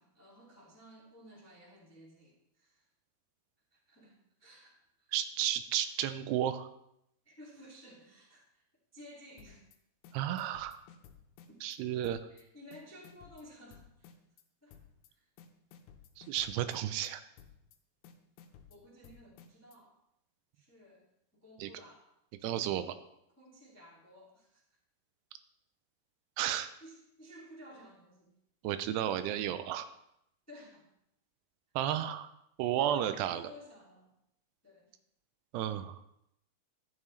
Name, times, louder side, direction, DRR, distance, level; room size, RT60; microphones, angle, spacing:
voice 1, 0.0-2.9 3.7-5.1 7.2-8.6 8.9-9.7 12.3-14.1 14.6-14.8 15.1-15.3 18.7-19.9 20.5-21.0 21.3-22.1 23.4-24.6 26.8-28.3 30.5-30.8 32.7-34.1 34.6-34.9 35.7-35.9, equal, 5° left, -3 dB, 1.1 m, -55 dB
voice 2, 5.1-6.7 10.1-10.8 11.6-12.2 16.2-17.2 21.6-21.7 22.4-22.9 26.4-26.7 28.6-29.9 31.8-32.3 32.6-33.5 35.5-36.0, right 11 dB, 85° right, 11 dB, 2.8 m, -32 dB
sound 1, 9.4-9.8 10.0-11.8 12.0-12.4 12.7-14.4 14.7-15.1 15.4-17.1 17.4-17.8 18.0-19.8, left 7 dB, 90° left, 2.9 m, -56 dB
11.5 x 11.0 x 3.2 m, 0.78 s
omnidirectional pair, 4.7 m